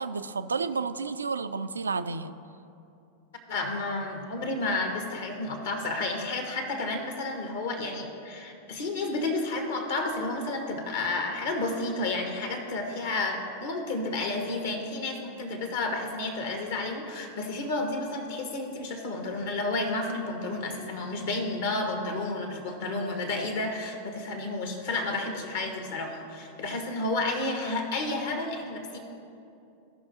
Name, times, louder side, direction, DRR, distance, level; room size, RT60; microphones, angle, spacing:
voice 1, 0.0-2.3, right 4 dB, 75° right, 11 dB, 0.3 m, -31 dB
voice 2, 3.5-29.0, left 2 dB, 55° left, 3 dB, 1.4 m, -31 dB
16.0 x 5.8 x 2.8 m, 2.7 s
figure-of-eight pair, 90°, 0 cm